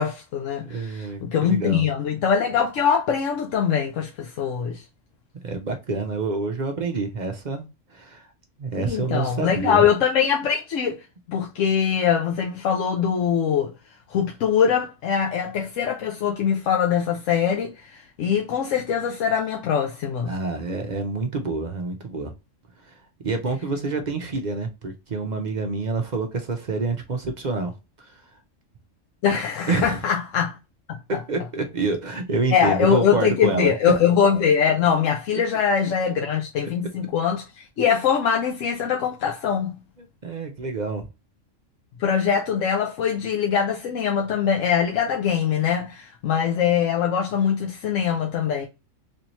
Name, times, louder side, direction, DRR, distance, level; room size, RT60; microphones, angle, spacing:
voice 1, 0.0-4.8 8.8-13.7 14.1-20.3 29.2-30.6 31.1-31.2 32.5-39.8 42.0-48.7, left 7 dB, 75° left, 1.0 m, -22 dB
voice 2, 0.6-1.8 5.4-7.7 7.9-8.3 8.6-9.8 20.3-22.3 22.8-22.9 23.2-27.7 29.7-30.0 31.3-33.7 40.0-41.0, right 3 dB, 50° right, 0.6 m, -27 dB
3.3 x 2.8 x 2.8 m
omnidirectional pair, 1.3 m